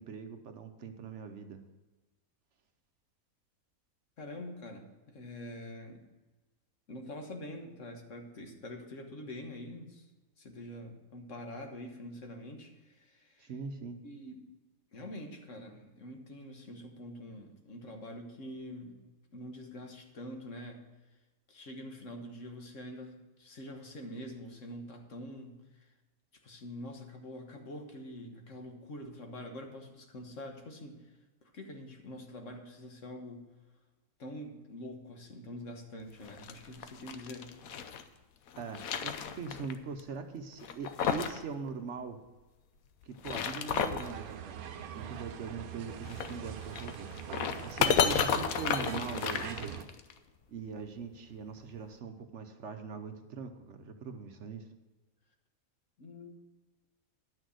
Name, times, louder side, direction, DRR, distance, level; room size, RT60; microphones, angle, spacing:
voice 1, 0.0-1.6 13.4-14.0 38.6-42.2 43.0-44.7 44.9-47.1 47.6-49.8 50.5-54.7, right 5 dB, 60° right, 6 dB, 1.0 m, -41 dB
voice 2, 4.2-6.0 6.9-10.0 10.4-13.5 14.0-14.5 14.9-19.0 19.3-20.8 21.5-25.9 26.4-31.1 31.4-33.5 34.2-37.5 47.7-48.1 56.0-56.3, left 1 dB, 60° left, 3 dB, 1.6 m, -45 dB
sound 1, 36.2-38.0 38.5-39.7 40.0-40.1 40.6-41.4 41.7-41.8 43.0-44.1 46.0-50.1, left 7 dB, 75° left, 1.2 m, -32 dB
sound 2, 44.0-49.8, right 8 dB, 85° right, 1.2 m, -43 dB
10.5 x 6.4 x 6.3 m, 1.2 s
omnidirectional pair, 1.5 m